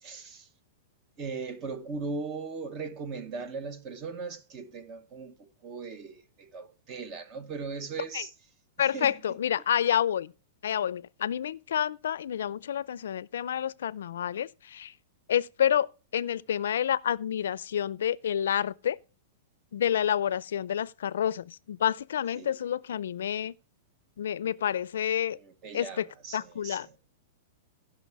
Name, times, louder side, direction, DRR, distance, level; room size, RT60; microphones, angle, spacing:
voice 1, 0.0-0.5 1.2-8.3 8.8-9.1 22.3-22.5 25.3-27.0, right 4 dB, 25° right, 0.8 m, -39 dB
voice 2, 8.8-10.3 10.6-14.9 15.3-19.0 19.7-23.5 24.2-25.4 25.7-26.1 26.3-26.9, left 9 dB, 85° left, 0.4 m, -29 dB
15.0 x 5.8 x 4.7 m
supercardioid pair, 175°, 0 cm